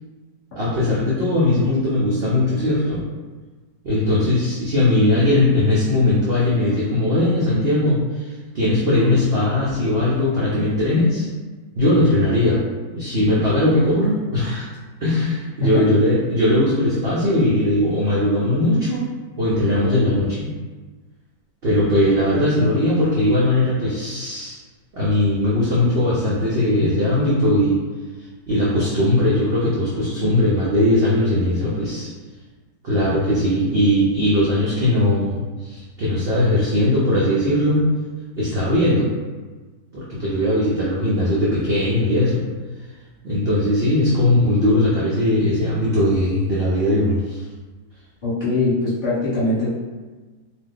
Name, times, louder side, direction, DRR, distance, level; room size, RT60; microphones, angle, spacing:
voice 1, 0.6-3.0 3.8-11.3 11.8-12.6 12.9-14.7 15.0-19.1 19.4-20.5 21.6-24.6 24.9-27.8 28.5-32.1 32.8-37.9 38.4-39.1 39.9-42.4 43.2-47.4, left 1 dB, 70° right, -7 dB, 0.5 m, -19 dB
voice 2, 48.2-49.7, left 2 dB, 35° left, -12 dB, 1.1 m, -21 dB
2.8 x 2.2 x 3.6 m, 1.3 s
omnidirectional pair, 1.8 m